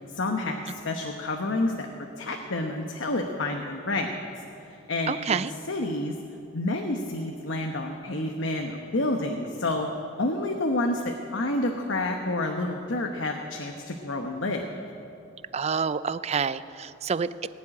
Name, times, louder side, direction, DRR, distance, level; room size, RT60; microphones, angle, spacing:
voice 1, 0.2-1.9 2.2-4.1 4.7-6.1 6.5-9.9 10.2-14.6, left 2 dB, 70° left, 3 dB, 1.0 m, -29 dB
voice 2, 5.1-5.5 15.5-17.5, right 6 dB, 35° right, 15 dB, 0.4 m, -28 dB
19.0 x 7.5 x 9.9 m, 2.9 s
head